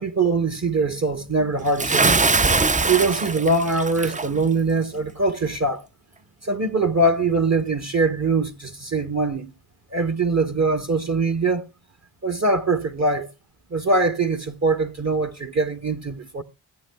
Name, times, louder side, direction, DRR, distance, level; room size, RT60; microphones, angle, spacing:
voice 1, 0.0-2.2 2.7-5.9 6.4-9.5 9.9-11.6 12.2-13.3 13.7-16.4, right 3 dB, 35° right, 1.0 m, -22 dB
Bathtub (filling or washing) / Splash splatter, 1.8-4.3, right 3 dB, 15° right, 0.4 m, -21 dB
16.0 x 8.5 x 2.2 m
cardioid pair, 40°, 47 cm